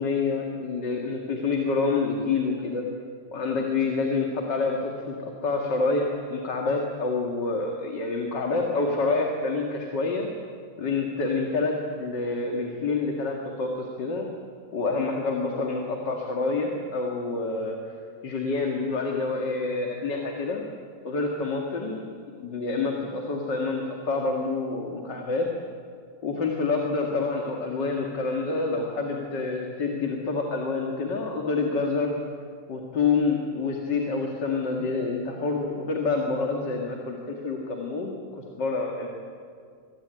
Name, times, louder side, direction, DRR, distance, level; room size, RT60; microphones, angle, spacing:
voice 1, 0.0-2.8 3.3-10.3 10.8-14.3 14.7-18.0 18.2-20.6 21.0-22.0 22.4-25.5 26.2-32.1 32.7-39.1, left 3 dB, 65° left, 1 dB, 3.0 m, -27 dB
25.0 x 23.5 x 9.2 m, 2.2 s
omnidirectional pair, 2.1 m